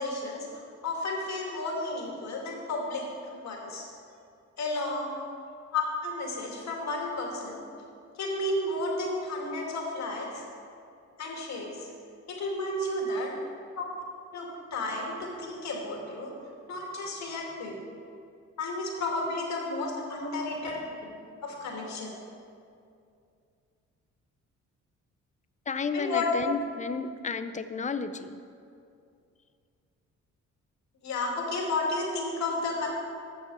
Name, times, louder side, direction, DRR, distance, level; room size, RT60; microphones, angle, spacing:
voice 1, 0.0-3.1 3.4-3.9 4.6-5.2 5.7-7.6 8.2-10.4 11.2-11.9 12.3-13.3 13.8-13.9 14.3-16.3 16.7-17.8 18.6-20.8 21.4-22.1 25.9-26.3 31.0-32.9, left 2 dB, 65° left, -1 dB, 2.4 m, -32 dB
voice 2, 12.9-13.5 20.2-20.3 20.6-20.7 25.7-28.4, left 5 dB, 25° left, 11 dB, 0.6 m, -33 dB
12.5 x 7.0 x 4.8 m, 2.4 s
cardioid pair, 90°, 30 cm